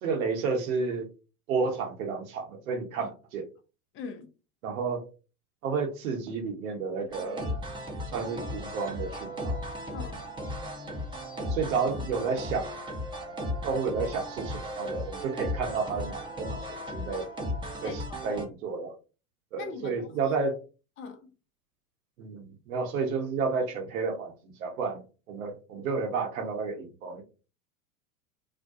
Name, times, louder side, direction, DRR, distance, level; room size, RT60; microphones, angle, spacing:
voice 1, 0.0-1.1 1.5-3.5 4.6-5.1 5.6-7.5 8.1-9.6 11.5-12.7 13.6-17.3 17.8-19.0 19.5-20.6 22.2-25.0 25.3-27.2, right 4 dB, 65° right, 0.9 m, -31 dB
voice 2, 3.9-4.3 9.9-10.2 17.8-18.0 19.6-20.4 21.0-21.3, left 4 dB, 30° left, 0.5 m, -41 dB
sound 1, 7.1-18.5, left 1 dB, 10° right, 0.7 m, -36 dB
2.4 x 2.1 x 2.6 m
hypercardioid pair, 85°, 44 cm